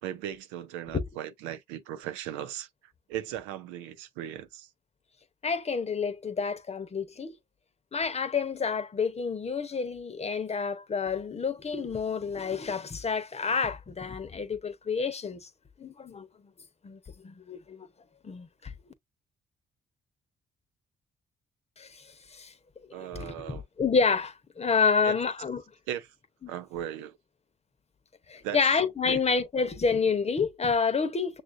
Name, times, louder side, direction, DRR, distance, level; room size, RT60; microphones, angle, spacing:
voice 1, 0.0-2.7 3.1-4.7 22.9-23.6 25.0-25.2 25.9-26.1 26.5-27.2 28.4-28.6 29.0-29.2, right 11 dB, 90° right, 0.4 m, -37 dB
voice 2, 5.4-7.4 7.9-15.5 15.8-16.3 16.8-17.9 18.2-18.7 21.8-22.5 23.1-25.6 28.3-31.4, left 5 dB, 35° left, 0.8 m, -29 dB
6.3 x 2.4 x 2.6 m
supercardioid pair, 55°, 19 cm